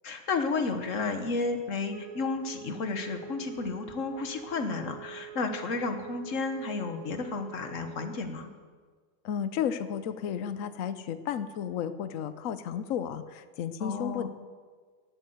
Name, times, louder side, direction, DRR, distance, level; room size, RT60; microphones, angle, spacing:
voice 1, 0.0-8.5 13.8-14.3, left 4 dB, 45° left, 7 dB, 1.4 m, -32 dB
Wind instrument woodwind instrument, 1.9-8.3, right 9 dB, 50° right, 1.3 m, -46 dB
voice 2, 9.2-14.3, left 8 dB, 90° left, 12 dB, 0.7 m, -33 dB
19.0 x 8.3 x 8.0 m, 1.5 s
omnidirectional pair, 2.3 m